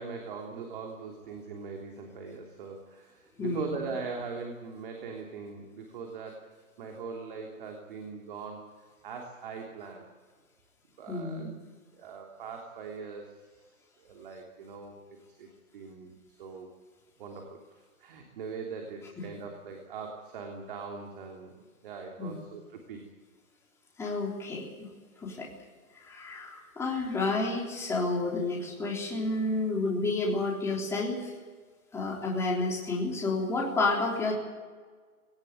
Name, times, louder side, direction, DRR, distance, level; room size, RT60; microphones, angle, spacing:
voice 1, 0.0-6.5 6.8-10.1 11.0-11.5 12.0-13.6 14.0-15.5 15.7-16.7 17.2-23.0, right 5 dB, 35° right, 2 dB, 3.3 m, -41 dB
voice 2, 11.1-11.5 22.2-22.4 24.0-24.9 25.2-25.5 26.0-31.3 31.9-34.3, left 2 dB, 5° left, -2 dB, 3.6 m, -30 dB
19.5 x 18.5 x 9.6 m, 1.5 s
hypercardioid pair, 155°, 43 cm